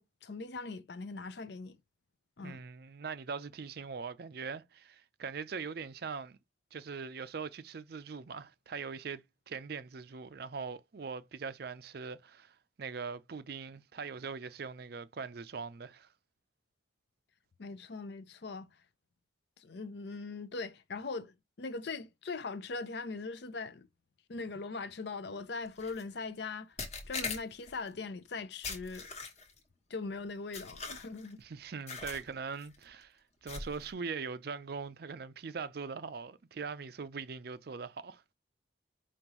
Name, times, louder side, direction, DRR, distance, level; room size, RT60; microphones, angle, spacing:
voice 1, 0.0-1.8 2.4-2.6 17.6-18.7 19.6-23.9 24.3-26.7 27.1-29.2 29.9-31.4, left 3 dB, 55° left, 0.5 m, -41 dB
voice 2, 2.4-6.4 6.7-16.1 31.4-38.3, right 5 dB, 50° right, 0.4 m, -41 dB
sound 1, 25.8-26.0 26.8-27.8 28.6-29.6 30.5-31.3 31.9-32.3 32.6-32.8 33.5-33.9, left 4 dB, 35° left, 1.1 m, -41 dB
5.2 x 2.6 x 3.0 m
head